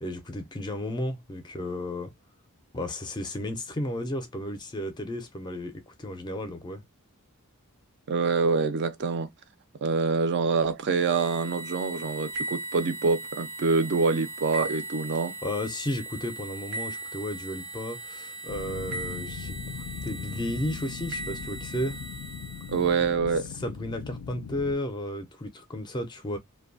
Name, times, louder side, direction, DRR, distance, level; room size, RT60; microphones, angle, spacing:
voice 1, 0.0-2.1 2.7-6.8 15.4-19.6 20.0-22.0 23.6-26.4, left 1 dB, 20° left, 0.4 m, -33 dB
voice 2, 8.1-9.3 9.8-15.4 22.7-23.5, right 4 dB, 50° right, 0.4 m, -26 dB
sound 1, 11.0-23.1, right 2 dB, 75° right, 0.9 m, -38 dB
sound 2, 18.5-24.7, left 6 dB, 85° left, 0.4 m, -39 dB
2.6 x 2.2 x 2.5 m
head